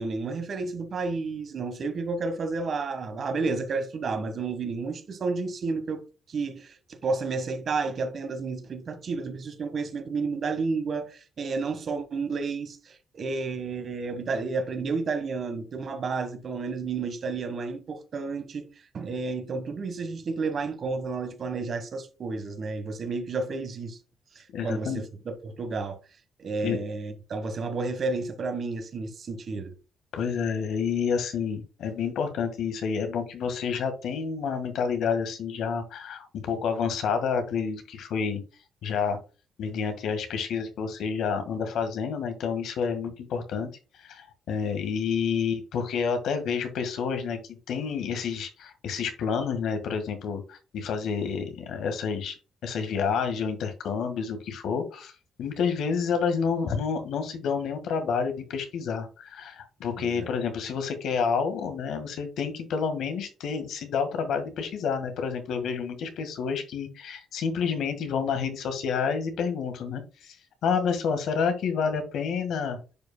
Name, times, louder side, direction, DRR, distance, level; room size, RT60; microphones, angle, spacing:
voice 1, 0.0-6.0 6.3-18.7 18.9-24.0 24.3-26.0 26.4-29.7 60.0-60.3, right 4 dB, 50° right, 1.5 m, -31 dB
voice 2, 24.5-25.0 26.6-26.8 30.1-38.4 38.8-39.2 39.6-43.7 44.0-47.4 47.7-52.4 52.6-55.1 55.4-70.4 70.6-72.8, left 6 dB, 75° left, 1.7 m, -29 dB
10.5 x 5.0 x 2.2 m
cardioid pair, 90°, 0 cm